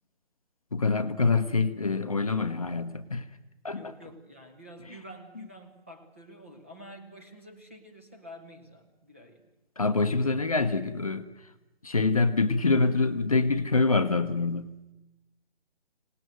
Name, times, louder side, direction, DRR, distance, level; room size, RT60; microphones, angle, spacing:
voice 1, 0.7-3.3 3.6-3.9 4.9-5.0 9.8-11.5 11.8-14.7, left 3 dB, 35° left, 10 dB, 0.9 m, -26 dB
voice 2, 3.7-9.5, equal, 10° right, 3 dB, 0.9 m, -48 dB
25.0 x 18.5 x 9.2 m, 0.99 s
hypercardioid pair, 170°, 33 cm